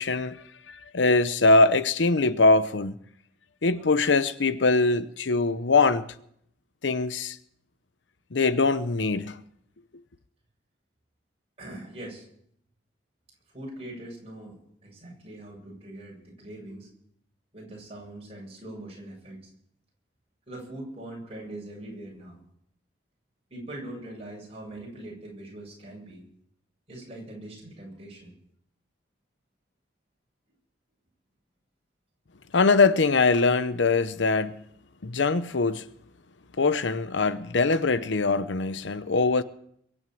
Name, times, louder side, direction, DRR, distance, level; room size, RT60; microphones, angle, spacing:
voice 1, 0.0-3.0 3.6-6.1 6.8-7.4 8.3-9.4 32.5-34.6 35.0-35.9 36.6-39.4, left 3 dB, 75° left, 0.8 m, -22 dB
voice 2, 11.6-12.2 13.5-14.6 14.8-16.9 17.5-19.4 20.5-22.4 23.5-26.2 26.9-28.3, right 1 dB, 35° right, 7.6 m, -41 dB
23.0 x 7.9 x 7.8 m
head